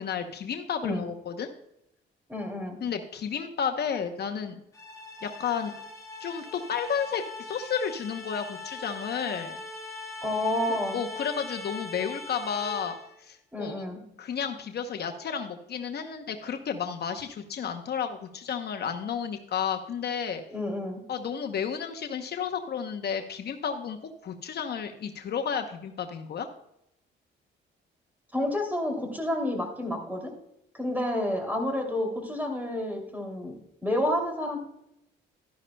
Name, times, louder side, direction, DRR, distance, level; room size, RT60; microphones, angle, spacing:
voice 1, 0.0-1.5 2.8-4.6 5.2-5.7 6.2-9.6 10.9-13.9 14.2-20.4 21.1-24.0 24.2-26.5, left 7 dB, 55° left, 6 dB, 0.8 m, -32 dB
voice 2, 2.3-2.8 10.2-11.0 13.5-14.0 20.5-21.0 28.3-30.3 30.7-33.6 33.8-34.6, left 1 dB, 10° right, 3 dB, 2.7 m, -29 dB
sound 1, 4.7-13.2, left 2 dB, 15° left, 2.2 m, -41 dB
12.0 x 10.5 x 2.2 m, 0.81 s
cardioid pair, 90°, 20 cm